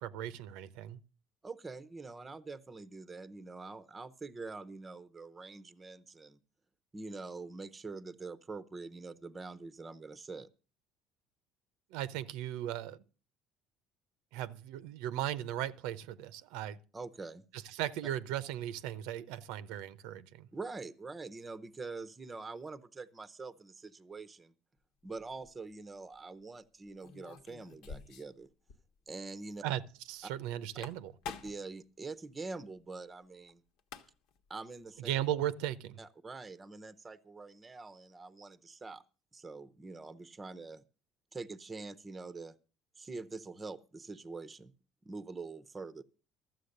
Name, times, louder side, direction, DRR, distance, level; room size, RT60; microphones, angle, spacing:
voice 1, 0.0-1.0 11.9-13.0 14.3-16.8 17.7-20.5 29.6-29.8 30.1-31.1 35.0-36.0, right 12 dB, 90° right, 0.8 m, -37 dB
voice 2, 1.4-6.4 6.9-10.5 16.9-17.4 20.5-24.5 25.0-28.5 29.1-29.6 30.2-30.3 30.7-30.8 31.4-33.6 34.5-35.1 36.0-39.0 39.3-40.8 41.3-42.5 43.0-44.7 45.0-46.0, right 3 dB, 15° right, 0.7 m, -45 dB
sound 1, 25.2-25.5 27.0-28.4 28.7-28.8 29.1-29.2 30.6-31.7 33.5-33.6 33.8-34.4, left 6 dB, 75° left, 1.3 m, -47 dB
13.0 x 7.7 x 6.5 m
cardioid pair, 145°, 0 cm